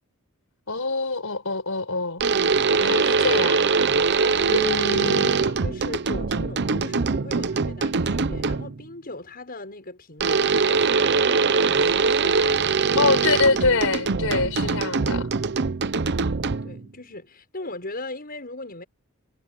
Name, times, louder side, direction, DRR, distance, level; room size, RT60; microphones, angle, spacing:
voice 1, 0.7-2.2 2.8-3.6 4.5-5.4 13.0-15.3, left 3 dB, 70° left, 4.9 m, -25 dB
sound 1, 2.2-8.8 10.2-16.8, right 4 dB, 55° right, 0.7 m, -22 dB
voice 2, 4.1-4.7 5.2-13.2 16.6-18.8, left 2 dB, 45° left, 6.7 m, -39 dB
head